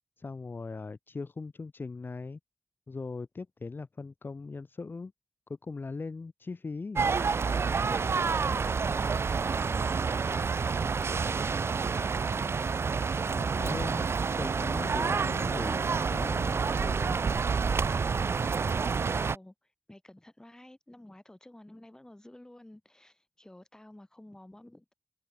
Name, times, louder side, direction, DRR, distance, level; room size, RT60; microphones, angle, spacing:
voice 1, 0.2-2.4 2.9-5.1 5.6-7.1 13.3-17.2, left 4 dB, 55° left, 2.1 m, -40 dB
sound 1, 7.0-19.4, right 5 dB, 85° right, 1.4 m, -28 dB
voice 2, 8.5-11.8 19.1-24.9, left 1 dB, 15° left, 6.4 m, -52 dB
wide cardioid pair, 100°, 4 cm